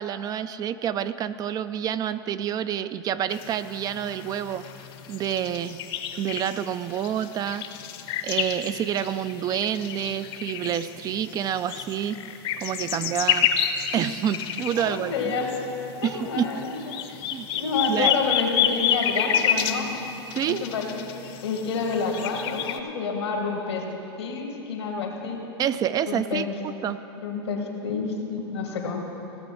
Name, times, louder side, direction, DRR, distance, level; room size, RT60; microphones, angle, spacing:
voice 1, 0.0-4.6 5.1-5.8 6.2-7.6 8.2-12.2 12.6-13.5 13.9-15.3 16.0-16.5 17.3-17.5 17.9-18.1 20.3-20.6 25.6-27.0, right 9 dB, 30° right, 13 dB, 0.3 m, -28 dB
sound 1, 3.3-22.8, left 9 dB, 40° left, 0.8 m, -30 dB
voice 2, 14.7-15.5 16.0-17.2 17.5-19.9 20.5-21.1 21.4-23.8 24.2-25.4 26.1-26.5 27.1-29.0, left 4 dB, 85° left, 1 dB, 2.1 m, -29 dB
16.0 x 6.9 x 6.0 m, 2.9 s
hypercardioid pair, 115°, 14 cm